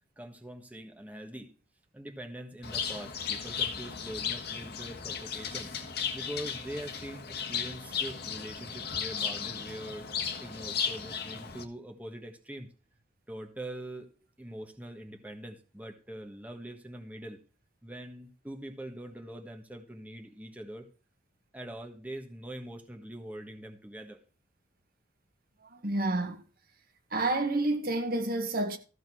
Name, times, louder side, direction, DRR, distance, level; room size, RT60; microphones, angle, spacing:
voice 1, 0.2-1.5 1.9-5.7 6.1-10.1 10.4-12.7 13.3-14.1 14.4-17.4 17.8-20.9 21.5-24.2, right 1 dB, 10° right, 1.4 m, -43 dB
Bird, 2.6-11.6, left 7 dB, 60° left, 1.6 m, -35 dB
voice 2, 25.7-26.4 27.1-28.8, right 2 dB, 55° right, 1.5 m, -29 dB
14.5 x 5.2 x 6.3 m
head